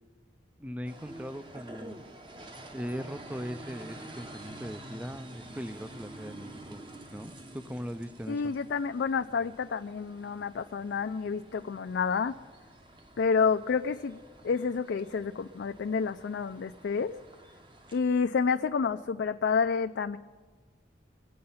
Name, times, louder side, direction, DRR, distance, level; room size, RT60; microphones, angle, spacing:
voice 1, 0.6-2.1 2.7-6.8 7.1-8.5, equal, 10° right, 12 dB, 0.4 m, -39 dB
sound 1, 0.9-18.0, right 1 dB, 25° right, 0.9 m, -49 dB
voice 2, 8.3-12.4 13.2-14.2 14.4-17.2 17.9-20.2, left 5 dB, 65° left, 7 dB, 0.4 m, -29 dB
22.5 x 7.7 x 5.6 m, 1.4 s
head